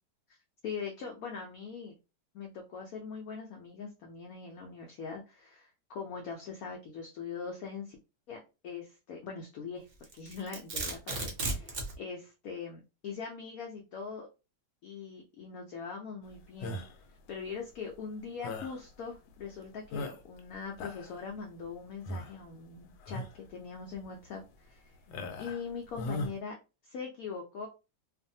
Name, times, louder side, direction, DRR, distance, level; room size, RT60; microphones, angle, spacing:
voice 1, 0.6-1.9 2.3-8.0 8.3-9.9 10.1-14.3 14.8-16.8 17.3-24.9 25.4-26.6 26.8-27.7, left 5 dB, 70° left, 1 dB, 0.9 m, -42 dB
Domestic sounds home sounds, 10.0-12.0, right 2 dB, 60° right, 0.6 m, -35 dB
sound 1, 16.6-17.1 18.4-18.8 19.4-19.5 19.9-20.4 20.7-21.2 22.1-22.4 23.0-23.4 23.9-24.0 25.1-25.7 26.0-26.3, left 2 dB, 90° left, 1.3 m, -38 dB
2.6 x 2.5 x 2.6 m, 0.29 s
omnidirectional pair, 1.9 m